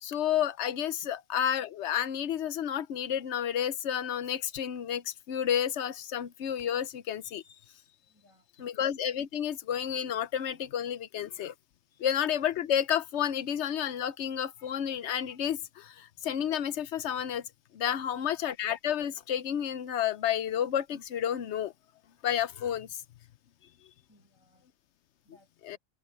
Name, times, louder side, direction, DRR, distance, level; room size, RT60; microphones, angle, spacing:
voice 1, 0.0-7.4 8.6-11.5 12.0-17.4 17.7-21.7 22.2-23.0 25.7-25.8, left 9 dB, 65° left, 0.9 m, -31 dB
voice 2, 8.1-8.7 11.9-12.1 24.1-24.7 25.2-25.8, left 1 dB, 80° left, 8.4 m, -64 dB
omnidirectional pair, 1.4 m